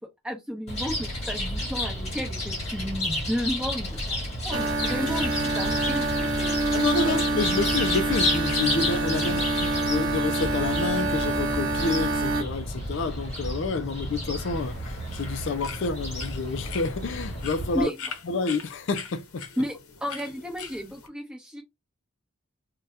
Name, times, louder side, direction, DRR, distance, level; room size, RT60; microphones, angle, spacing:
voice 1, 0.2-4.2 4.4-6.6 17.7-18.0 19.6-21.6, equal, 5° right, 0.8 m, -33 dB
Chirp tweet, 0.7-17.8, left 1 dB, 30° left, 1.3 m, -31 dB
sound 1, 4.5-12.4, right 2 dB, 65° right, 0.9 m, -26 dB
voice 2, 6.7-17.9 18.3-19.5, left 4 dB, 55° left, 0.4 m, -29 dB
sound 2, 14.5-21.1, left 6 dB, 85° left, 0.7 m, -42 dB
2.7 x 2.2 x 3.4 m
head